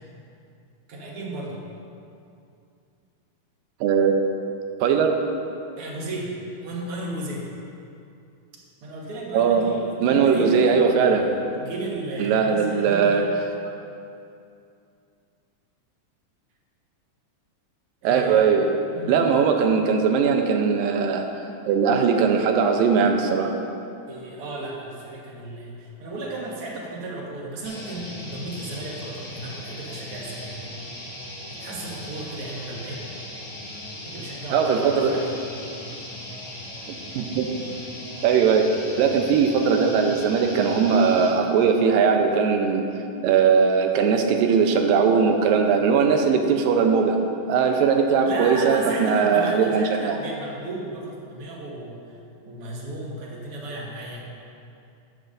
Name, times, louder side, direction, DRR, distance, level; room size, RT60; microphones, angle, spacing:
voice 1, 0.9-1.6 5.8-6.3 6.6-7.4 8.8-13.3 18.0-18.5 18.9-19.2 24.1-30.7 31.6-33.1 34.0-35.3 39.2-39.4 48.2-52.0 52.4-54.3, right 2 dB, 50° right, -3 dB, 1.9 m, -34 dB
voice 2, 3.8-4.2 4.8-5.2 9.3-9.6 10.0-11.2 12.2-13.2 18.0-18.7 19.1-21.3 21.7-23.5 34.5-35.1 37.1-37.6 38.2-42.8 43.2-47.2 47.5-50.2, right 6 dB, 80° right, 4 dB, 2.5 m, -20 dB
sound 1, 27.6-41.3, left 1 dB, 55° left, 4.1 m, -38 dB
14.0 x 10.5 x 2.7 m, 2.6 s
omnidirectional pair, 4.0 m